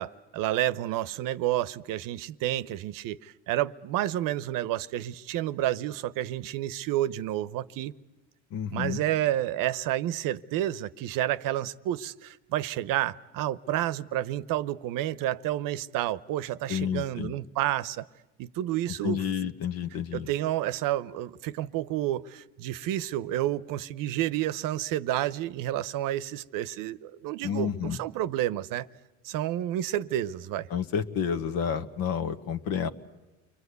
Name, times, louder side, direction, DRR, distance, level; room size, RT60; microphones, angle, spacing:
voice 1, 0.0-7.9 8.7-18.1 18.4-19.2 20.1-28.9 29.2-30.7, right 13 dB, 65° right, 0.8 m, -30 dB
voice 2, 8.5-9.0 16.7-17.3 19.0-20.3 27.4-28.0 30.7-32.9, left 8 dB, 70° left, 1.5 m, -30 dB
29.5 x 22.5 x 8.2 m
supercardioid pair, 100°, 36 cm